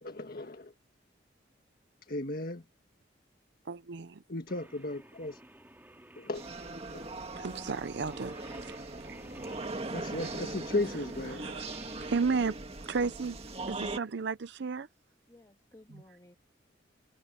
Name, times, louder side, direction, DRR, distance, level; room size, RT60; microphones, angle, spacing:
voice 1, 0.0-0.7 2.1-2.6 4.3-5.4 6.2-6.4 6.9-7.0 9.9-11.6, left 2 dB, 50° left, 1.7 m, -35 dB
voice 2, 3.7-4.2 7.4-8.3 8.6-8.7 11.3-11.6 12.0-12.6 12.9-13.4 13.7-14.9 15.9-16.0, right 5 dB, 65° right, 0.5 m, -33 dB
Singing, 4.5-12.2, right 1 dB, 10° right, 2.2 m, -53 dB
sound 1, 6.3-14.0, right 2 dB, 35° right, 2.0 m, -40 dB
voice 3, 15.3-16.4, left 1 dB, 20° left, 1.6 m, -56 dB
head